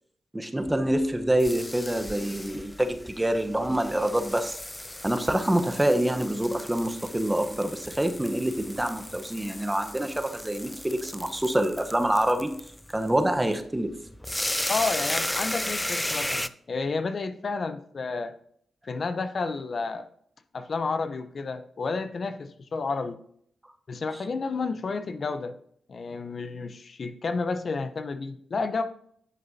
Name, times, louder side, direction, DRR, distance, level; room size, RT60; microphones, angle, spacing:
voice 1, 0.3-4.6 5.0-12.6 12.9-14.0, right 1 dB, 15° right, 7 dB, 1.0 m, -26 dB
sound 1, 0.6-16.5, left 1 dB, 10° left, 0.4 m, -35 dB
voice 2, 14.7-18.3 18.8-20.1 20.5-23.2 23.9-25.6 25.9-28.8, left 4 dB, 60° left, 9 dB, 0.7 m, -31 dB
11.0 x 6.7 x 2.8 m, 0.65 s
supercardioid pair, 45°, 0 cm